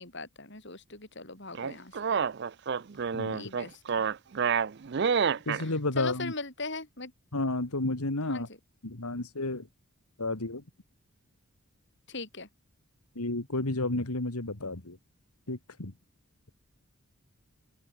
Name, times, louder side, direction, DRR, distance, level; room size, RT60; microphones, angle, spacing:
voice 1, 0.0-2.0 3.3-4.1 5.6-7.1 8.3-8.5 12.1-12.5, left 3 dB, 50° left, 4.9 m, -40 dB
sound 1, 1.5-5.6, right 6 dB, 50° right, 0.4 m, -28 dB
voice 2, 5.5-6.3 7.3-8.5 8.8-9.7 10.2-10.6 13.2-15.0 15.5-15.9, left 2 dB, 85° left, 2.2 m, -31 dB
head